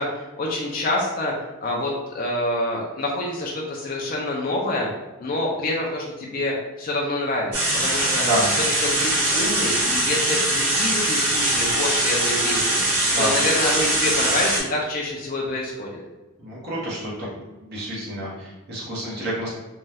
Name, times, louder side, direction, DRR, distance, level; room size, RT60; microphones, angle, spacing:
voice 1, 0.0-1.3 1.6-4.9 5.2-8.2 8.5-12.8 13.2-16.0, left 2 dB, 40° left, -2 dB, 0.4 m, -27 dB
sound 1, 7.5-14.6, right 1 dB, 85° right, 1.1 m, -22 dB
voice 2, 8.2-8.5 13.1-13.3 16.4-17.1 17.7-19.5, right 1 dB, 45° right, -7 dB, 0.9 m, -28 dB
2.6 x 2.2 x 3.2 m, 1.2 s
head